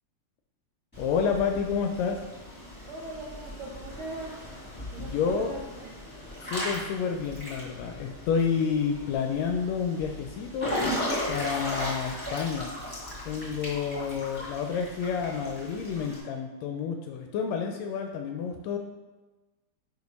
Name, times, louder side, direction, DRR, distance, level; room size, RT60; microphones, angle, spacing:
Water / Splash splatter / Drip, 0.9-16.2, left 1 dB, 5° left, 1.4 m, -37 dB
voice 1, 1.0-2.2 5.0-5.5 6.4-10.8 11.3-12.7 13.2-18.8, left 6 dB, 80° left, 3 dB, 1.6 m, -29 dB
voice 2, 2.9-4.4 4.9-5.6, right 2 dB, 80° right, -3 dB, 1.2 m, -39 dB
5.1 x 4.7 x 5.2 m, 1.2 s
omnidirectional pair, 3.4 m